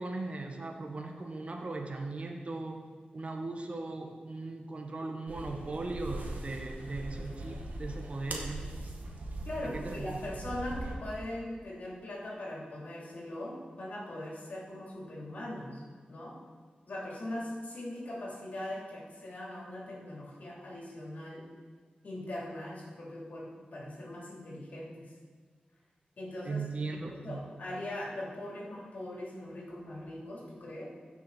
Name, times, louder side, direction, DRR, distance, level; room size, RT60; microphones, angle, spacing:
voice 1, 0.0-2.8 3.1-8.7 9.6-10.1 26.4-27.5, right 3 dB, 45° right, 2 dB, 1.1 m, -38 dB
sound 1, 5.3-10.9, right 1 dB, 70° right, 1.6 m, -41 dB
voice 2, 9.4-15.8 16.1-16.3 16.9-21.5 22.0-25.1 26.2-26.6 27.1-30.9, left 1 dB, 65° left, -5 dB, 3.4 m, -40 dB
15.5 x 6.3 x 4.3 m, 1.6 s
wide cardioid pair, 95°, 3 cm